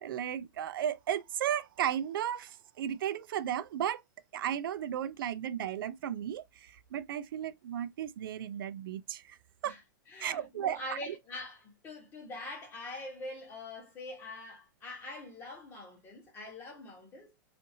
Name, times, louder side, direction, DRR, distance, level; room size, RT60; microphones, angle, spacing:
voice 1, 0.0-4.0 4.3-9.4 9.6-9.8 10.2-10.8 11.1-11.2, right 10 dB, 85° right, 0.4 m, -34 dB
voice 2, 10.1-17.3, left 2 dB, 20° left, 1.1 m, -44 dB
2.6 x 2.5 x 2.6 m
supercardioid pair, 160°, 11 cm